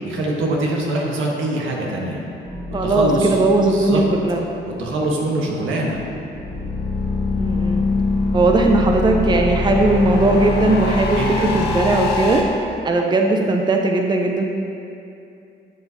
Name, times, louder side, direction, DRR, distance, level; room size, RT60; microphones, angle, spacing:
voice 1, 0.0-2.2 2.8-4.0 4.6-6.0 11.1-11.6, right 1 dB, 80° right, -2 dB, 1.5 m, -24 dB
sound 1, 2.4-11.6, left 1 dB, 5° right, 1.7 m, -36 dB
voice 2, 2.7-4.4 7.4-7.8 8.3-12.4 12.8-14.4, right 2 dB, 20° right, 2 dB, 0.7 m, -18 dB
sound 2, 6.3-12.4, left 3 dB, 55° left, 1.3 m, -22 dB
11.5 x 6.9 x 2.9 m, 2.7 s
cardioid pair, 90°, 20 cm